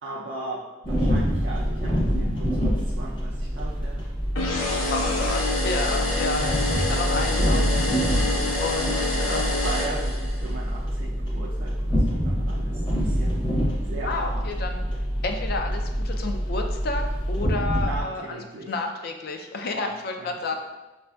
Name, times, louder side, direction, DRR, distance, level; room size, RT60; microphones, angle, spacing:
voice 1, 0.0-4.0 4.8-5.1 6.3-6.8 8.4-13.5 13.8-14.5 17.8-18.8 19.7-20.5, right 3 dB, 65° right, -5 dB, 0.4 m, -38 dB
sound 1, 0.8-18.0, equal, 25° left, 0.7 m, -26 dB
sound 2, 4.4-10.5, left 2 dB, 80° left, 0.7 m, -27 dB
voice 2, 4.9-6.4 6.9-8.3 8.6-9.0 9.3-9.4 14.1-14.8 15.2-18.4 18.7-20.5, left 3 dB, 50° left, 4 dB, 0.4 m, -31 dB
5.0 x 2.5 x 2.2 m, 1.1 s
head